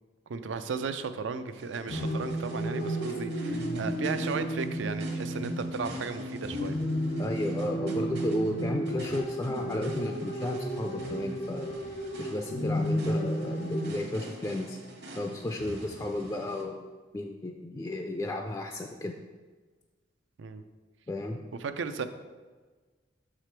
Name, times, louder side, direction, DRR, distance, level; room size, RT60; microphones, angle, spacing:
voice 1, 0.3-6.8 20.4-20.6 21.6-22.1, right 5 dB, 90° right, 10 dB, 0.4 m, -35 dB
sound 1, 1.5-16.6, right 1 dB, 65° right, 1.1 m, -46 dB
sound 2, 1.9-13.9, right 1 dB, 85° left, 1.3 m, -33 dB
voice 2, 7.2-11.8 12.2-14.8 15.1-16.9 17.1-19.1 21.1-21.4, left 1 dB, 20° left, 3 dB, 0.3 m, -33 dB
5.8 x 4.9 x 4.4 m, 1.4 s
head